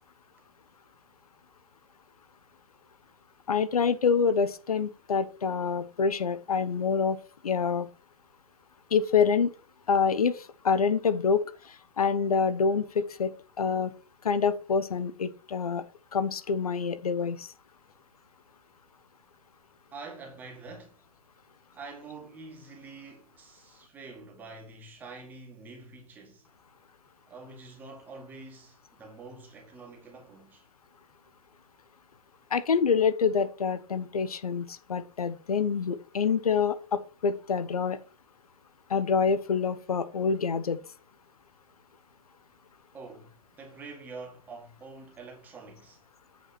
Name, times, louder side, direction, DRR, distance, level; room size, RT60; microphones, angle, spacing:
voice 1, 3.5-7.2 7.4-7.9 8.9-9.5 9.9-13.9 14.2-15.8 16.1-17.5 32.5-38.0 38.9-40.8, left 6 dB, 80° left, 1.1 m, -26 dB
voice 2, 19.9-21.0 21.7-26.5 27.3-30.6 42.9-46.0, right 3 dB, 10° right, 1.9 m, -46 dB
8.6 x 5.2 x 5.9 m
hypercardioid pair, 165°, 19 cm